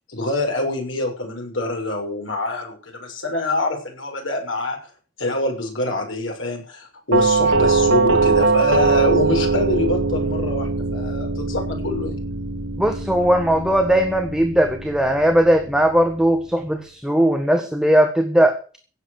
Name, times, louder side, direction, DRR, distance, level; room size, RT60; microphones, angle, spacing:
voice 1, 0.1-4.8 5.2-12.2, left 2 dB, 80° left, 2 dB, 6.6 m, -25 dB
Doorbell, 7.1-16.0, right 3 dB, 85° right, 2.2 m, -21 dB
voice 2, 12.8-18.6, right 1 dB, 5° right, 5 dB, 1.6 m, -18 dB
16.5 x 8.5 x 6.7 m, 0.39 s
head